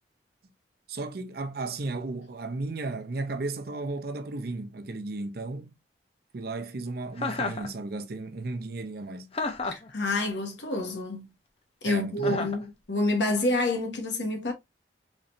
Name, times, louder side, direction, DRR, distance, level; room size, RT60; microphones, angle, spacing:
voice 1, 0.9-5.7 6.3-9.3 11.8-12.4, right 3 dB, 55° right, 0.6 m, -34 dB
Chuckle chortle, 7.2-7.7 9.3-9.9 12.2-12.6, left 3 dB, 35° left, 0.6 m, -31 dB
voice 2, 9.6-11.3 11.8-14.5, left 2 dB, 80° left, 1.3 m, -28 dB
4.1 x 3.1 x 2.6 m
head